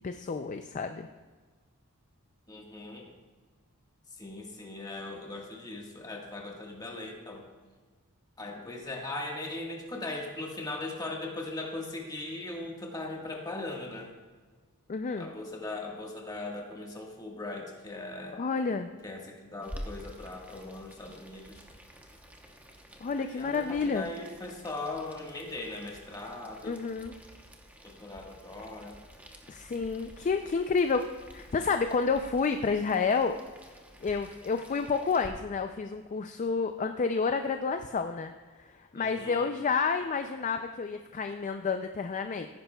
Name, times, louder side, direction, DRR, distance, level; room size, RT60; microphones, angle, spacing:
voice 1, 0.0-1.1 14.9-15.3 18.3-18.9 23.0-24.1 26.6-27.1 29.5-31.1 31.3-33.4 34.0-38.3 38.6-42.5, left 5 dB, 35° left, 7 dB, 0.4 m, -30 dB
voice 2, 2.5-3.1 4.1-7.5 8.4-14.1 15.2-18.4 19.0-21.6 23.3-26.8 27.8-29.0 38.9-39.5, left 2 dB, 15° left, 0 dB, 1.5 m, -39 dB
Boiling, 19.6-35.3, equal, 5° right, 0.9 m, -50 dB
15.5 x 10.0 x 2.3 m, 1.4 s
head